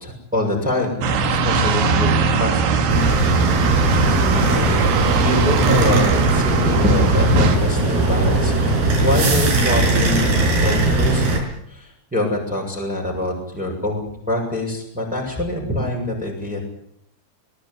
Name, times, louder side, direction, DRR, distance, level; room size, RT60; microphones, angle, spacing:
voice 1, 0.0-2.9 5.2-11.3 11.7-16.6, left 1 dB, ahead, -1 dB, 7.0 m, -25 dB
sound 1, 1.0-7.6, right 4 dB, 85° right, 4.8 m, -20 dB
sound 2, 2.9-11.4, right 2 dB, 55° right, 7.0 m, -19 dB
23.0 x 20.0 x 9.7 m, 0.72 s
omnidirectional pair, 5.2 m